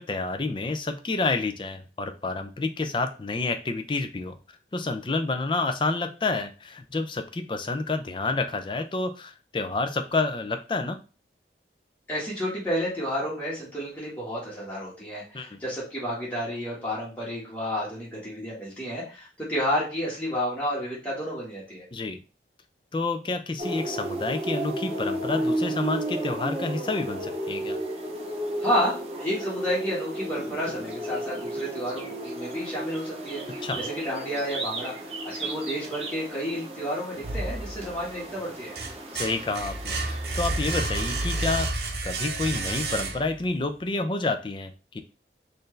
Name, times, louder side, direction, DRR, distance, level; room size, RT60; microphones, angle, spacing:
voice 1, 0.0-4.4 4.7-11.0 15.3-15.6 21.9-22.2 22.9-27.8 33.6-33.8 39.1-41.7 42.0-45.0, left 3 dB, 30° left, 7 dB, 0.4 m, -29 dB
voice 2, 12.1-21.8 28.6-34.9 35.3-38.7, equal, 10° left, -8 dB, 1.5 m, -31 dB
sound 1, 23.6-41.7, right 1 dB, 35° right, 0.6 m, -33 dB
sound 2, 37.2-38.1 38.5-43.5, right 2 dB, 65° right, 0.8 m, -30 dB
4.3 x 2.6 x 3.2 m, 0.34 s
head